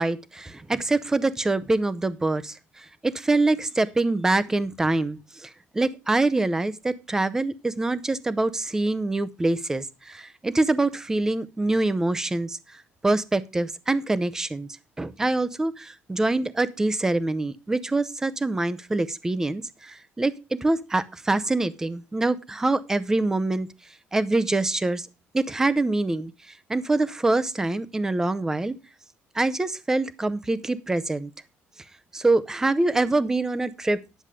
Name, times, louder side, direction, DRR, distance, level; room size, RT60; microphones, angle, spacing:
voice 1, 0.0-2.6 3.0-12.6 13.0-14.7 15.0-23.7 24.1-25.1 25.3-26.3 26.7-28.7 29.3-31.3 32.1-34.0, right 2 dB, 10° right, 15 dB, 0.7 m, -25 dB
10.5 x 7.2 x 5.0 m, 0.28 s
cardioid pair, 155°, 5 cm